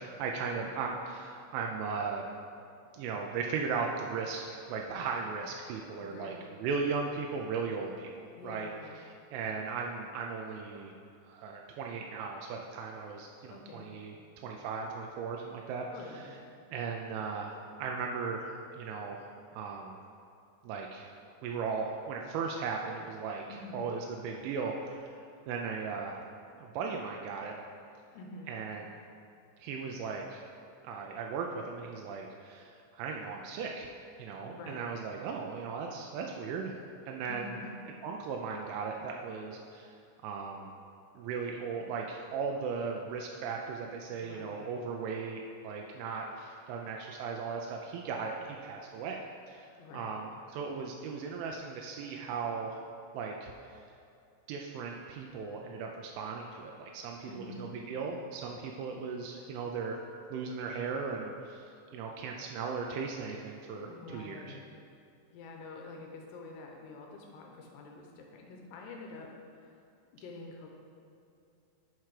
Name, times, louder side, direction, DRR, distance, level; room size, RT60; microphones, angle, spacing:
voice 1, 0.0-2.2 2.9-8.7 9.0-10.9 11.2-14.2 14.4-15.9 16.7-19.3 19.6-20.0 20.6-21.1 21.4-23.4 23.7-26.1 26.6-27.5 28.5-29.0 29.6-30.4 30.8-33.9 34.2-36.8 37.1-37.5 38.0-39.9 40.2-40.7 41.2-52.8 53.1-53.8 54.5-60.0 60.3-64.5, right 5 dB, 85° right, 1 dB, 3.0 m, -37 dB
voice 2, 6.0-6.4 8.4-9.0 13.5-13.9 15.9-16.5 23.5-23.8 28.1-28.5 34.4-34.9 37.3-37.7 44.2-44.8 49.8-50.2 57.2-57.8 63.8-64.7 65.3-69.8 70.1-70.7, left 3 dB, 80° left, 1 dB, 2.5 m, -47 dB
10.0 x 4.8 x 4.7 m, 2.6 s
omnidirectional pair, 5.4 m